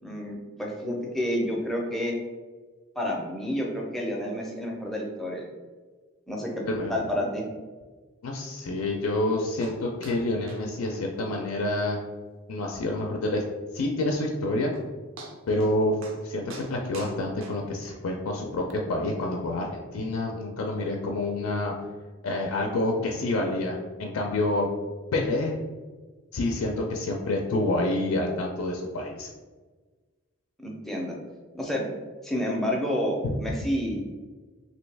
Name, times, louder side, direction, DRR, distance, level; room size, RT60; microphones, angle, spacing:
voice 1, 0.0-2.2 3.0-5.4 6.3-6.6 6.9-7.5 30.6-31.1 31.5-31.9 32.2-34.0, equal, ahead, -2 dB, 0.5 m, -29 dB
voice 2, 8.2-12.0 12.5-13.4 13.7-14.7 15.5-16.0 16.2-16.4 16.7-21.7 22.2-24.7 25.1-25.6 26.3-29.3 33.2-33.3, left 2 dB, 80° left, 1 dB, 0.4 m, -28 dB
sound 1, 9.6-9.8 10.0-10.2 10.5-10.7 10.9-11.0 11.4-11.5 11.9-12.0 12.5-12.6 14.3-14.4 14.7-14.9 15.2-15.7 16.0-16.2 16.5-18.0 18.7-18.8, right 2 dB, 65° right, 0.5 m, -44 dB
3.1 x 2.8 x 3.3 m, 1.3 s
head